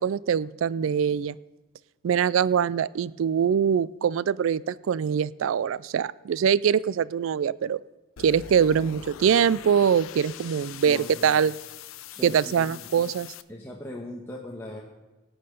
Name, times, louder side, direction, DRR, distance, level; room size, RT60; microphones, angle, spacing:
voice 1, 0.0-1.4 2.0-7.8 8.2-11.5 12.2-13.3, right 7 dB, 75° right, 21 dB, 0.3 m, -23 dB
sound 1, 8.2-13.4, left 9 dB, 80° left, 0.6 m, -43 dB
voice 2, 10.9-11.3 12.1-12.8 13.5-14.8, left 1 dB, 10° left, -3 dB, 1.2 m, -39 dB
17.5 x 8.8 x 5.3 m, 1.1 s
head